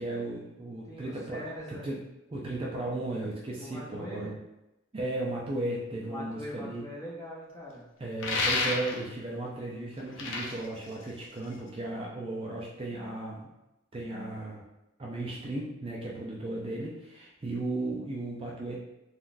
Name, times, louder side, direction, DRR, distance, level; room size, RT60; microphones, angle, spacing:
voice 1, 0.0-2.0 2.3-4.4 4.9-6.8 8.0-13.5 13.9-14.6 15.0-18.8, right 2 dB, 25° right, -3 dB, 0.4 m, -35 dB
voice 2, 0.9-1.8 3.6-4.3 6.0-7.9, equal, 15° left, -5 dB, 0.7 m, -42 dB
sound 1, 8.2-9.2 10.0-11.7, left 3 dB, 65° left, 0.5 m, -31 dB
3.7 x 2.3 x 2.5 m, 0.93 s
head